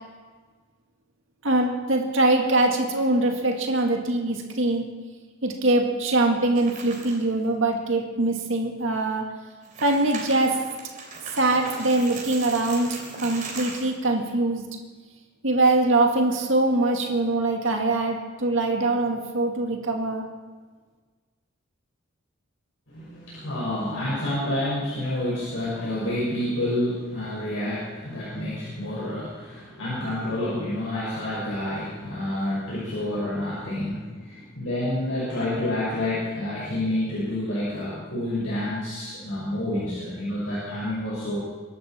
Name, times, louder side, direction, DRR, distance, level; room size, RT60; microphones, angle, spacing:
voice 1, 1.4-4.9 5.4-9.2 9.8-10.5 11.4-12.9 13.2-14.6 15.4-20.2, right 2 dB, 65° right, 2 dB, 2.1 m, -23 dB
sound 1, 6.6-7.3 7.7-7.8 8.4-8.5 9.5-14.0, right 3 dB, 40° right, 3.4 m, -38 dB
voice 2, 22.9-41.4, left 1 dB, 65° left, -8 dB, 5.6 m, -29 dB
23.0 x 12.0 x 4.4 m, 1.4 s
head